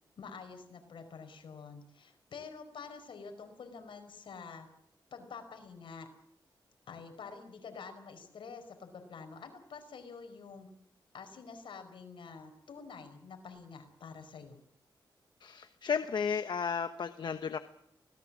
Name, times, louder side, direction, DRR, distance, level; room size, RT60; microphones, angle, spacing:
voice 1, 0.2-4.7 5.1-6.1 6.9-10.7 11.1-14.6, left 5 dB, 80° left, 6 dB, 4.7 m, -48 dB
voice 2, 15.4-17.6, left 6 dB, 60° left, 10 dB, 1.0 m, -33 dB
24.5 x 18.0 x 7.5 m, 0.70 s
wide cardioid pair, 100°, 8 cm